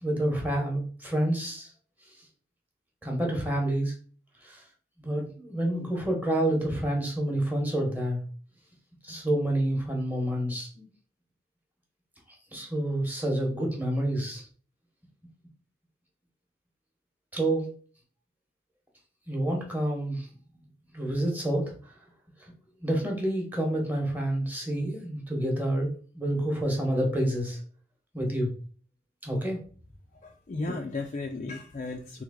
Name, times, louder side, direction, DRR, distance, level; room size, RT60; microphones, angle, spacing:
voice 1, 0.0-1.7 3.0-3.9 4.4-4.6 5.0-8.2 9.0-10.9 12.5-14.5 17.3-17.7 19.3-20.3 20.9-21.7 22.4-22.5 22.8-27.6 28.1-28.5 29.2-29.6, right 1 dB, 10° right, 0 dB, 1.0 m, -28 dB
voice 2, 30.1-32.2, left 3 dB, 40° left, 2 dB, 0.3 m, -35 dB
3.3 x 3.2 x 3.6 m, 0.42 s
head